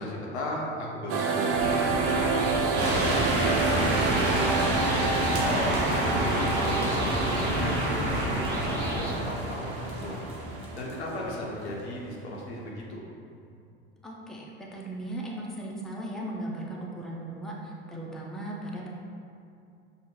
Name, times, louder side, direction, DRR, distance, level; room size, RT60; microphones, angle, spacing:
voice 1, 0.0-4.8 5.0-10.2 10.5-13.0, left 1 dB, 85° left, -3 dB, 0.8 m, -36 dB
sound 1, 1.1-11.4, right 4 dB, 50° right, 0.4 m, -30 dB
sound 2, 1.5-9.1, equal, 30° right, 1.0 m, -32 dB
sound 3, 2.8-11.7, right 1 dB, 75° right, 0.9 m, -30 dB
voice 2, 14.0-18.9, right 1 dB, ahead, -3 dB, 0.5 m, -37 dB
5.3 x 2.1 x 3.0 m, 2.6 s
hypercardioid pair, 75°, 33 cm